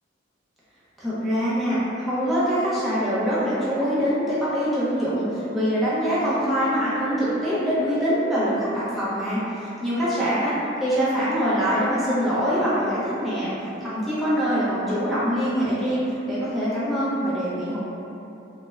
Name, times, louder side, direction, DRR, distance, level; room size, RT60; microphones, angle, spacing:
voice 1, 1.0-13.5 13.8-17.8, equal, ahead, -12 dB, 0.5 m, -24 dB
2.3 x 2.0 x 3.0 m, 2.9 s
head